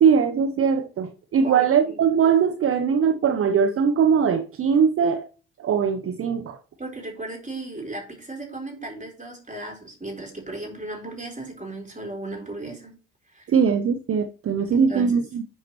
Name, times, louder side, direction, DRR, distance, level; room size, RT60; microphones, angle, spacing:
voice 1, 0.0-5.2 5.6-6.6 13.5-15.4, right 6 dB, 35° right, 0.7 m, -21 dB
voice 2, 1.4-2.0 6.8-12.9 13.3-13.5 14.7-15.2, right 2 dB, 20° right, 4.0 m, -36 dB
10.5 x 4.7 x 3.0 m
hypercardioid pair, 45°, 38 cm